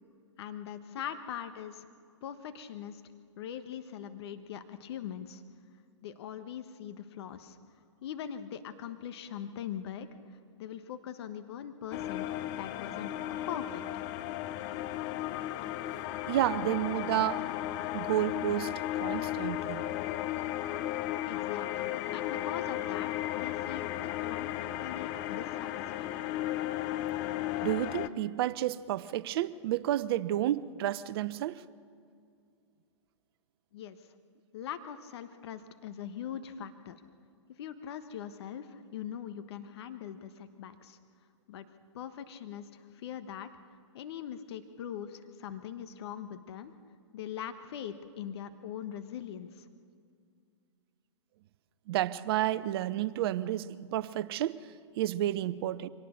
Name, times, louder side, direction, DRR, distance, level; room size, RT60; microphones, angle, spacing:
voice 1, 0.4-1.8 2.2-3.0 3.4-5.4 6.0-7.6 8.0-13.1 13.5-13.8 21.3-23.9 24.2-26.1 33.7-34.0 34.5-37.0 37.6-41.0 41.5-41.7 41.9-43.5 43.9-46.7 47.1-49.7, left 9 dB, 60° left, 1.2 m, -41 dB
sound 1, 11.9-28.1, left 13 dB, 40° left, 0.7 m, -35 dB
voice 2, 16.3-17.5 17.9-19.8 27.6-31.6 51.9-54.6 55.0-55.9, right 13 dB, 55° right, 0.8 m, -31 dB
24.5 x 18.5 x 6.5 m
hypercardioid pair, 115°, 15 cm